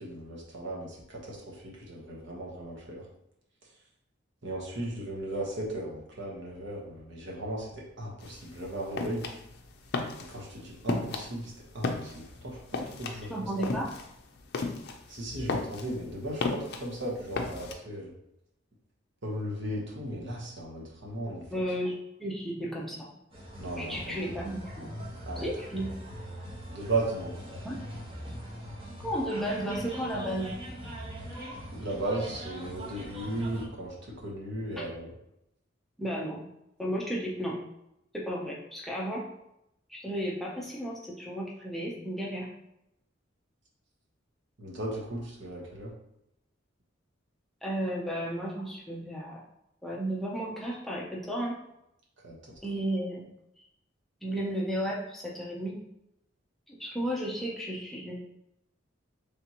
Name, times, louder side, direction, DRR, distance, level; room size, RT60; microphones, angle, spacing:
voice 1, 0.0-3.0 4.4-9.3 10.2-13.7 15.1-18.1 19.2-21.4 23.6-24.2 25.2-25.5 26.7-27.4 31.7-35.1 44.6-45.9 52.2-52.6, right 1 dB, 65° right, -3 dB, 1.1 m, -36 dB
sound 1, 8.2-17.7, left 3 dB, 55° left, 0.5 m, -35 dB
voice 2, 13.3-13.9 21.5-23.1 23.8-24.9 25.4-25.9 27.5-27.8 29.0-30.6 36.0-36.5 36.8-37.6 38.1-39.2 39.9-42.5 47.6-49.4 49.8-51.6 52.6-53.3 54.2-55.8 56.7-58.1, equal, ahead, -5 dB, 0.6 m, -33 dB
sound 2, 23.3-33.7, equal, 30° right, 1.2 m, -41 dB
4.2 x 3.4 x 2.9 m, 0.82 s
head